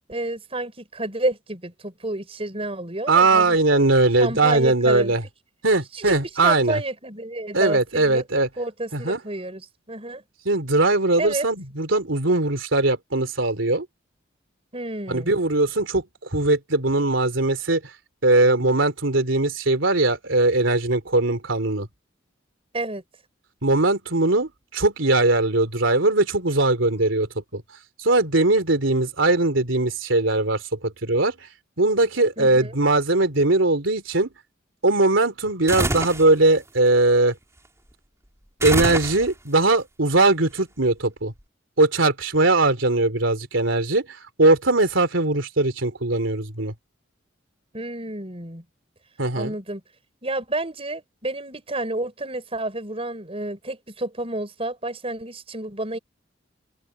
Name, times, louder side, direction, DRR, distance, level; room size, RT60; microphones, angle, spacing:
voice 1, 0.1-3.8 4.2-5.1 5.9-6.2 6.4-8.2 8.6-10.2 11.2-11.5 14.7-15.3 22.7-23.0 32.4-32.7 47.7-48.6 49.3-49.8 50.2-56.0, right 2 dB, 30° right, 5.7 m, -30 dB
voice 2, 3.1-5.2 5.6-6.8 7.5-8.5 8.9-9.2 10.4-13.9 15.1-16.0 16.3-17.8 18.2-21.9 23.6-27.6 28.0-31.3 31.8-34.3 34.8-37.3 38.6-41.3 41.8-46.7 49.2-49.5, right 2 dB, 85° right, 3.2 m, -20 dB
sound 1, 35.7-36.3 38.6-39.6, right 1 dB, 15° right, 4.6 m, -25 dB
head